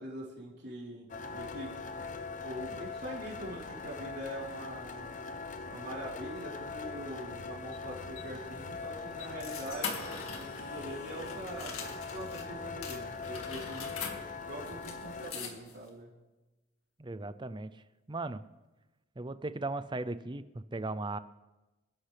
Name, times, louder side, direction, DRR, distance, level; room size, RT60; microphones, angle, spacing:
voice 1, 0.0-1.7 2.4-5.1 5.7-16.1, right 1 dB, 50° right, -4 dB, 4.0 m, -43 dB
sound 1, 1.1-15.3, left 4 dB, 35° left, 0.7 m, -41 dB
sound 2, 7.7-12.5 12.8-15.9, left 6 dB, 90° left, 2.2 m, -43 dB
voice 2, 17.0-17.7 18.1-18.4 19.2-21.2, right 2 dB, 20° right, 13 dB, 0.5 m, -37 dB
27.0 x 11.0 x 3.4 m, 1.1 s
head